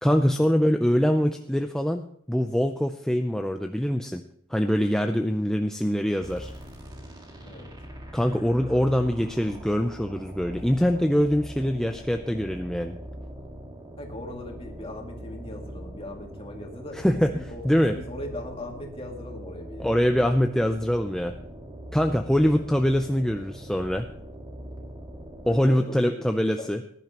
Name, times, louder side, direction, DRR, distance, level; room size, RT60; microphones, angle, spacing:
voice 1, 0.0-4.2 4.5-6.5 8.1-13.0 17.0-17.9 19.8-21.3 21.9-24.1 25.5-26.8, equal, 5° left, 5 dB, 0.5 m, -24 dB
sound 1, 6.2-25.8, equal, 20° right, 1.8 m, -42 dB
voice 2, 14.0-17.6 17.9-20.0 25.5-26.8, left 1 dB, 25° left, 1 dB, 2.3 m, -40 dB
19.0 x 11.0 x 3.0 m, 0.67 s
head